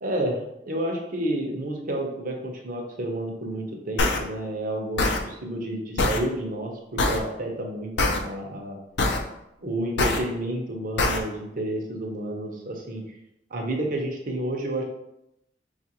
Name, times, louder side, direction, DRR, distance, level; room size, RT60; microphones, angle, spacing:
voice 1, 0.0-8.8 9.6-13.0 13.5-14.8, right 1 dB, 50° right, 1 dB, 0.7 m, -30 dB
sound 1, 4.0-4.2 5.0-5.2 6.0-6.2 7.0-7.2 8.0-8.2 9.0-9.2 10.0-10.2 11.0-11.2, left 2 dB, 70° left, 0.5 m, -22 dB
5.4 x 2.5 x 2.8 m, 0.84 s
head